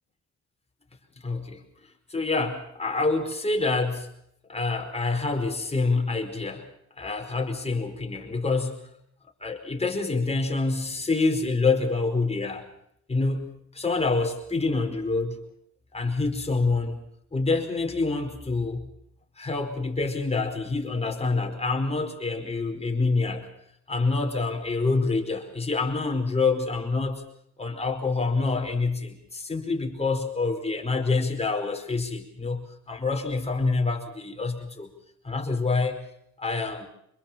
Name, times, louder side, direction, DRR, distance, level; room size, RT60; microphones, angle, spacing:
voice 1, 1.2-1.6 2.1-4.1 4.5-6.7 7.0-8.8 9.4-12.6 13.1-15.4 15.9-17.0 17.3-18.9 19.4-23.5 23.9-27.2 27.6-34.9 35.2-36.0 36.4-36.9, left 3 dB, 20° left, 3 dB, 4.9 m, -27 dB
25.5 x 22.0 x 5.8 m, 0.72 s
cardioid pair, 90°, 30 cm